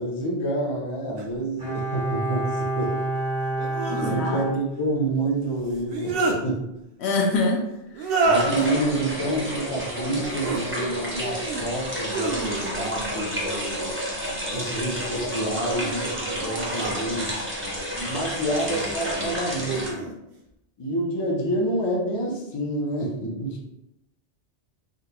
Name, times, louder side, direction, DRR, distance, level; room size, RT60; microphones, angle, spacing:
voice 1, 0.0-3.0 4.0-6.7 8.2-14.0 14.5-17.4 17.9-20.1 20.8-23.6, right 1 dB, 35° left, -1 dB, 0.4 m, -28 dB
sound 1, 1.2-1.3 3.6-4.2 5.7-6.4 7.9-8.7 10.2-10.6 11.1-11.7 12.1-13.0 14.2-14.8 15.4-17.4 18.5-19.0 19.6-20.1, right 3 dB, 60° right, 0.7 m, -29 dB
Bowed string instrument, 1.6-5.3 5.6-5.7, right 2 dB, 80° right, 1.4 m, -29 dB
voice 2, 3.9-4.4 7.0-7.6 8.0-8.3, left 3 dB, 70° left, 2 dB, 0.8 m, -25 dB
sound 2, 8.3-19.9, equal, 15° right, 0.5 m, -30 dB
3.6 x 2.2 x 2.8 m, 0.86 s
omnidirectional pair, 1.2 m